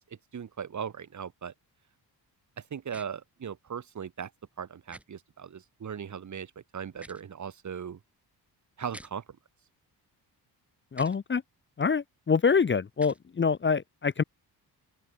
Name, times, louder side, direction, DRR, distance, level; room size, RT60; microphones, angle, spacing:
voice 1, 0.3-1.5 2.7-4.3 4.6-8.0 8.8-9.2, right 7 dB, 45° right, 1.8 m, -38 dB
sound 1, 2.9-3.1 4.9-5.0 6.9-7.2 8.9-9.1 10.9-11.2 12.9-13.2, right 1 dB, 5° right, 2.1 m, -48 dB
voice 2, 10.9-11.4 11.8-14.2, left 5 dB, 30° left, 0.8 m, -25 dB
open air
cardioid pair, 115°, 40 cm